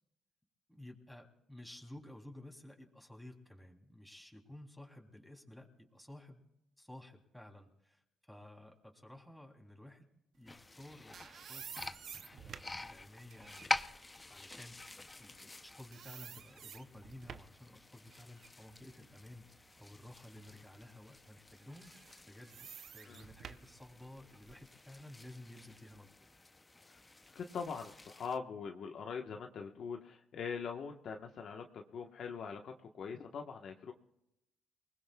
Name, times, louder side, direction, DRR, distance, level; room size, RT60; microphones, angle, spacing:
voice 1, 0.7-6.4 6.8-10.1 10.3-11.9 12.3-13.8 14.3-14.7 15.2-21.9 22.3-22.7 22.9-26.3, left 1 dB, 5° left, 1 dB, 3.2 m, -54 dB
sound 1, 10.5-28.4, left 2 dB, 20° left, 0.7 m, -47 dB
sound 2, 10.7-15.6 15.9-17.6 18.1-20.1 20.5-20.7 21.7-24.7, right 8 dB, 60° right, 0.7 m, -52 dB
voice 2, 27.3-33.9, left 6 dB, 65° left, 3 dB, 1.2 m, -42 dB
29.0 x 20.0 x 2.4 m, 0.85 s
cardioid pair, 90°, 0 cm